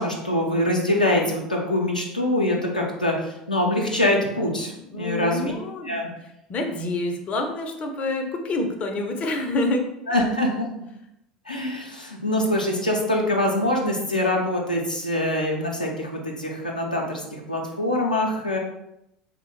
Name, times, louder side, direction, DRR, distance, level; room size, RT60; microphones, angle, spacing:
voice 1, 0.0-5.5 5.9-6.1 10.1-10.7 11.5-18.6, left 1 dB, 90° left, -1 dB, 0.4 m, -24 dB
voice 2, 4.9-6.0 6.5-10.2, left 2 dB, 30° left, 4 dB, 0.5 m, -27 dB
3.4 x 2.1 x 3.0 m, 0.82 s
figure-of-eight pair, 70°, 4 cm